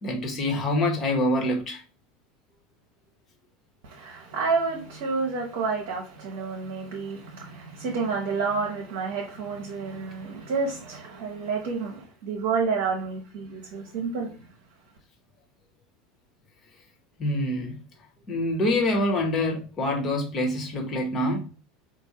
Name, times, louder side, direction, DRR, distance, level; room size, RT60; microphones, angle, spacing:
voice 1, 0.0-1.8 17.2-17.8 18.3-21.5, left 1 dB, 30° left, 1.4 m, -25 dB
voice 2, 3.8-14.3, right 4 dB, 55° right, 1.0 m, -29 dB
4.6 x 2.5 x 4.3 m
figure-of-eight pair, 75°, 0 cm